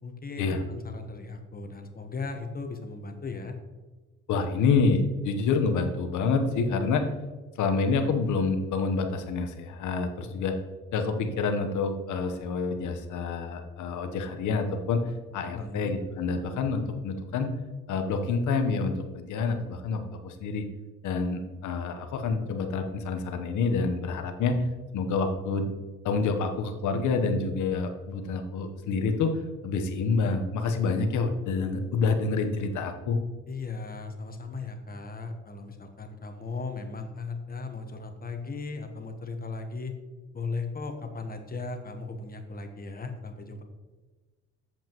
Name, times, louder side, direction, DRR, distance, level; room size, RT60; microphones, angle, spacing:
voice 1, 0.0-3.6 15.5-15.9 33.5-39.9 40.3-43.6, left 3 dB, 30° left, 5 dB, 1.1 m, -37 dB
voice 2, 4.3-7.0 7.6-10.5 10.9-15.0 15.3-17.5 17.9-20.7 21.0-24.7 24.9-25.7 26.0-33.2, left 4 dB, 80° left, 6 dB, 1.0 m, -27 dB
8.2 x 7.3 x 3.0 m, 1.3 s
cardioid pair, 90°, 30 cm